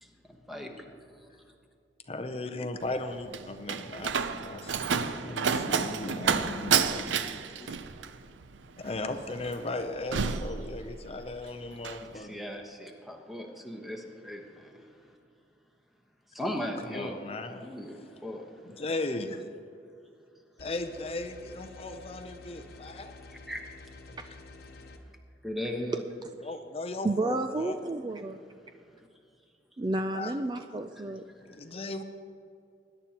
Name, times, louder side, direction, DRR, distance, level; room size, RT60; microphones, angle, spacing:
voice 1, 2.1-7.7 8.8-12.4 16.8-17.7 17.9-18.1 18.6-19.5 20.6-23.1 26.4-27.8 30.1-30.4 31.4-32.0, left 2 dB, 30° left, 7 dB, 0.5 m, -37 dB
Slam, 2.8-11.3 11.6-12.1, right 6 dB, 85° right, 0.5 m, -30 dB
voice 2, 12.1-14.4 16.3-17.2 17.6-18.4 23.5-23.6 25.4-26.0, left 1 dB, ahead, 2 dB, 1.1 m, -36 dB
sound 1, 20.6-25.0, left 3 dB, 55° left, 1.1 m, -49 dB
voice 3, 27.0-28.4 29.8-31.2, right 2 dB, 25° right, 6 dB, 0.3 m, -31 dB
20.5 x 10.5 x 2.9 m, 2.4 s
head